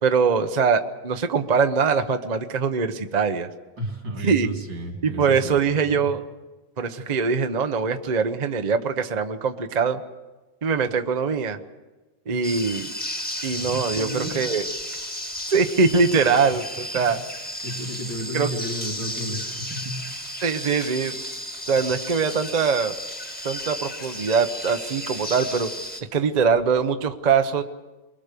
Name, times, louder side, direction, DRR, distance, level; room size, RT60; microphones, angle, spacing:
voice 1, 0.0-3.5 4.2-4.5 5.0-6.2 6.8-10.0 10.6-11.6 12.3-12.9 13.4-14.6 15.5-17.2 18.3-18.5 20.4-21.2 21.7-23.0 23.4-25.7 26.1-27.6, right 5 dB, 35° right, 7 dB, 0.7 m, -22 dB
voice 2, 3.8-5.6 5.8-6.1 12.3-12.4 13.9-14.3 16.9-17.1 17.6-20.0, right 1 dB, 80° right, 2 dB, 4.0 m, -32 dB
sound 1, 12.4-26.0, equal, 5° left, 1.5 m, -33 dB
24.0 x 21.0 x 6.8 m, 1.2 s
omnidirectional pair, 2.0 m